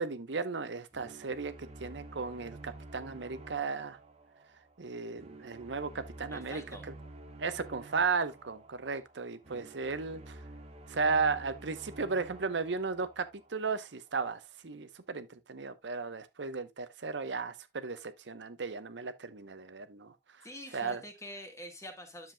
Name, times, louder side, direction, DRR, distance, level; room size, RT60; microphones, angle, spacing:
voice 1, 0.0-1.5 1.8-4.0 4.8-6.6 7.4-10.4 10.9-13.2 13.5-20.1 20.7-21.0, right 4 dB, 90° right, 0.9 m, -35 dB
sound 1, 0.9-14.0, right 2 dB, 35° right, 1.2 m, -50 dB
voice 2, 6.3-6.9 20.4-22.3, left 1 dB, 15° left, 1.9 m, -46 dB
10.5 x 7.4 x 2.2 m
head